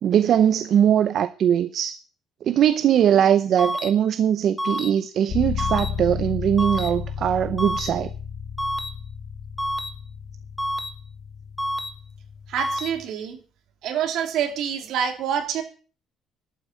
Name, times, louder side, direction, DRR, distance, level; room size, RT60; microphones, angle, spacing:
voice 1, 0.0-2.0 2.4-8.1, right 9 dB, 50° right, 0.7 m, -20 dB
sound 1, 3.6-3.9 4.6-4.9 5.6-5.9 6.6-6.9 7.6-7.9 8.6-8.9 9.6-9.9 10.6-10.9 11.6-11.9 12.6-12.9, equal, ahead, 1.6 m, -27 dB
sound 2, 5.3-13.0, left 7 dB, 45° left, 1.9 m, -33 dB
voice 2, 12.5-13.4 13.8-15.6, right 8 dB, 65° right, 3.3 m, -26 dB
12.0 x 9.0 x 9.2 m
cardioid pair, 170°, 0 cm